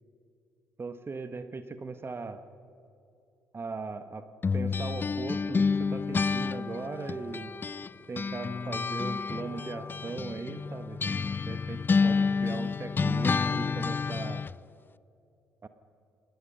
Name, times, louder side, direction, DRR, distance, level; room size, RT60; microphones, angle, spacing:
voice 1, 0.8-2.4 3.5-4.3 4.5-7.5 8.1-11.0 11.5-14.5 15.6-15.7, right 4 dB, 35° right, 10 dB, 1.4 m, -38 dB
sound 1, 4.4-7.9 8.2-14.6, left 5 dB, 30° left, 0.4 m, -29 dB
28.5 x 21.0 x 5.5 m, 2.6 s
figure-of-eight pair, 45°, 7 cm